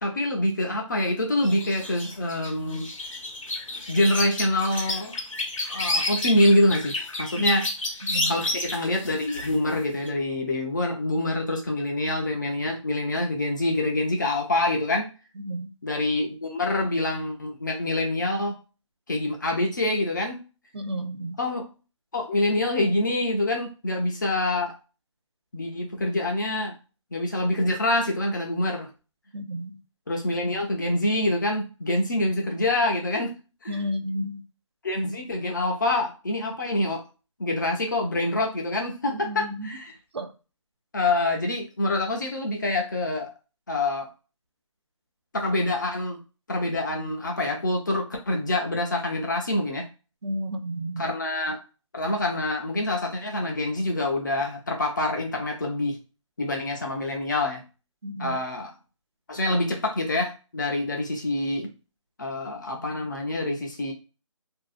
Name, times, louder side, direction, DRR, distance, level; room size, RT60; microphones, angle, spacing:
voice 1, 0.0-2.9 3.9-5.2 5.7-7.7 8.3-15.1 15.8-18.6 19.1-20.4 21.4-21.7 22.1-24.7 25.5-26.8 27.1-28.9 30.1-33.3 33.6-33.8 34.8-37.0 37.4-39.9 40.9-43.3 43.7-44.1 45.3-46.2 46.5-49.8 51.0-51.6 51.9-56.0 56.4-57.6 58.2-58.7 59.3-61.7 62.2-63.9, left 1 dB, 35° left, 0.6 m, -26 dB
sound 1, 1.4-9.8 10.1-10.2, left 2 dB, 80° left, 0.9 m, -30 dB
voice 2, 8.1-8.5 15.4-15.7 20.7-21.4 29.3-29.8 33.7-34.4 39.1-39.8 40.1-40.3 50.2-51.1 58.0-58.4, equal, 55° right, 0.5 m, -32 dB
2.6 x 2.3 x 2.4 m
figure-of-eight pair, 170°, 16 cm